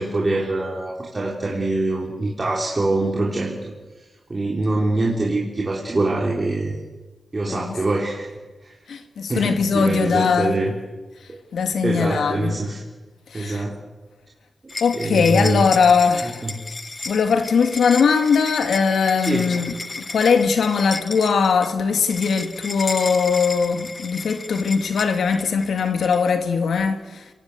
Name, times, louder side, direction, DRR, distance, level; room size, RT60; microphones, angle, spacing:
voice 1, 0.0-3.7 4.3-6.8 7.3-8.3 8.6-8.7 9.3-10.7 11.8-12.8 13.3-13.8 14.6-15.7 16.4-16.9 19.2-19.5, right 2 dB, 25° right, 3.7 m, -24 dB
voice 2, 7.5-7.8 8.9-10.6 11.5-12.6 13.3-13.6 14.8-16.5 17.1-27.3, left 5 dB, 85° left, 2.0 m, -20 dB
sound 1, 14.7-26.3, left 3 dB, 25° left, 0.9 m, -34 dB
30.0 x 18.0 x 8.3 m
wide cardioid pair, 160°, 0 cm